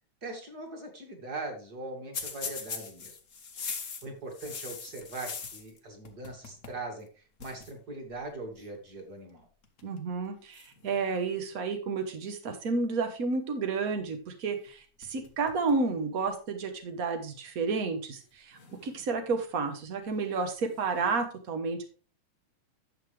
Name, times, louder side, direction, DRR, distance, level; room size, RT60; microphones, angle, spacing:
voice 1, 0.2-3.2 4.0-9.5, right 2 dB, 35° right, 3 dB, 2.4 m, -41 dB
sound 1, 2.1-5.8 6.0-6.8 7.1-7.2 7.4-7.7 8.6-8.9 9.6-10.0 10.5-11.6 14.6-14.7 15.0-15.8 16.3-16.4 17.3-17.4 18.5-19.4 20.6-21.2, left 5 dB, 70° left, 0.7 m, -42 dB
voice 2, 9.8-21.8, right 4 dB, 80° right, 5 dB, 0.7 m, -31 dB
11.0 x 7.4 x 3.3 m, 0.37 s
omnidirectional pair, 3.5 m